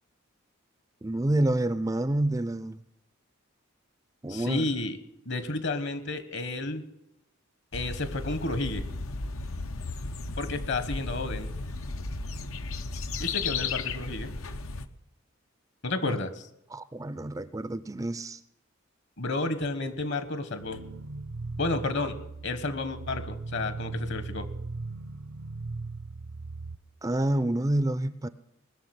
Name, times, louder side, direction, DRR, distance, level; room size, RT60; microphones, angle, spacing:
voice 1, 1.0-2.8 4.2-4.7 16.0-16.2 16.7-18.4 27.0-28.3, right 1 dB, 15° right, 14 dB, 0.5 m, -28 dB
voice 2, 4.3-5.0 5.2-6.8 7.7-8.9 10.4-11.5 13.2-14.3 15.8-16.5 19.2-20.8 21.6-22.2 22.4-24.5, left 2 dB, 55° left, 11 dB, 1.4 m, -31 dB
sound 1, 7.7-14.9, left 4 dB, 80° left, 0.9 m, -34 dB
sound 2, 20.6-26.8, right 3 dB, 70° right, 0.7 m, -38 dB
20.0 x 6.7 x 9.5 m, 0.84 s
head